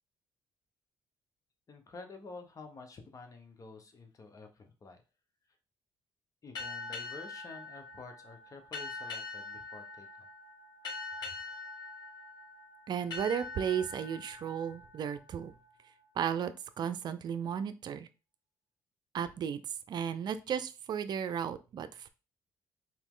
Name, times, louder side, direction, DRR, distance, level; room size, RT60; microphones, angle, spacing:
voice 1, 1.7-5.0 6.4-10.3, left 3 dB, 45° left, 6 dB, 1.1 m, -50 dB
sound 1, 6.5-15.8, left 3 dB, 60° left, 2.4 m, -44 dB
voice 2, 12.9-15.5 16.2-18.1 19.1-19.6 19.9-22.1, right 8 dB, 60° right, 11 dB, 0.5 m, -34 dB
4.5 x 3.0 x 3.7 m, 0.30 s
supercardioid pair, 65°, 8 cm